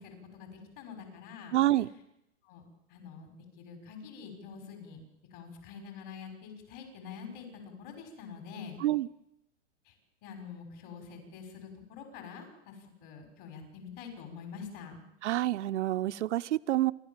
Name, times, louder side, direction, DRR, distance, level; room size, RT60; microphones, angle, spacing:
voice 1, 0.0-1.6 2.4-2.6 2.9-5.0 5.3-8.8 9.8-10.0 10.2-15.0, left 6 dB, 40° left, 5 dB, 6.0 m, -46 dB
voice 2, 1.5-1.9 8.8-9.1 15.2-16.9, right 14 dB, 70° right, 11 dB, 0.7 m, -27 dB
28.5 x 12.5 x 7.4 m, 0.83 s
hypercardioid pair, 150°, 37 cm